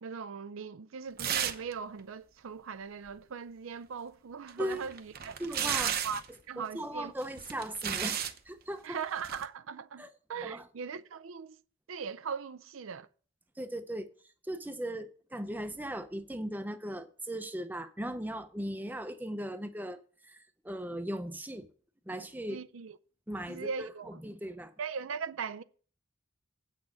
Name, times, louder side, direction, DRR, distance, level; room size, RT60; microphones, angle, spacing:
voice 1, 0.0-5.6 6.0-6.2 6.5-7.1 8.8-11.6 11.9-13.1 22.5-23.0 23.5-24.2 24.8-25.6, right 6 dB, 80° right, 0.5 m, -39 dB
sound 1, 1.2-1.7 2.0-2.1 4.5-6.3 7.2-8.4 9.2-9.4, right 8 dB, 45° right, 0.8 m, -33 dB
voice 2, 5.4-6.0 6.6-9.0 10.0-10.1 10.4-10.7 13.6-14.1 14.4-21.7 22.1-22.6 23.3-24.7, right 1 dB, 10° right, 0.7 m, -38 dB
8.4 x 6.5 x 6.1 m
head